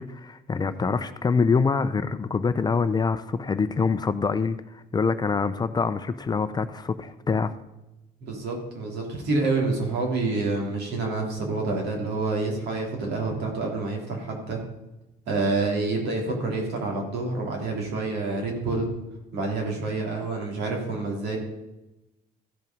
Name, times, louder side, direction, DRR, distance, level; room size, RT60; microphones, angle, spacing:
voice 1, 0.0-7.5, left 5 dB, 25° left, 11 dB, 0.5 m, -25 dB
voice 2, 8.2-14.6 15.3-18.9 19.3-21.4, right 3 dB, 80° right, 0 dB, 3.3 m, -28 dB
15.0 x 5.5 x 5.3 m, 0.97 s
cardioid pair, 110°, 17 cm